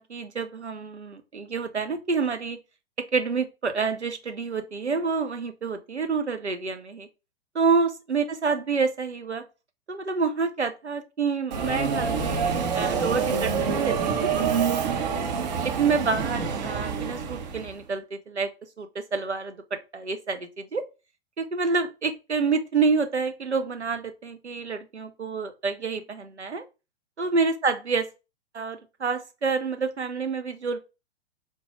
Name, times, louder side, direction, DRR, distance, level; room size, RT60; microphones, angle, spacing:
voice 1, 0.0-2.6 3.0-7.1 7.5-9.4 9.9-14.3 15.6-18.5 18.8-20.9 21.4-26.6 27.2-28.0 28.5-30.8, right 4 dB, 90° right, 0.6 m, -28 dB
Subway metro underground, 11.5-17.7, right 6 dB, 40° right, 0.7 m, -27 dB
4.4 x 2.2 x 2.9 m
figure-of-eight pair, 110°, 33 cm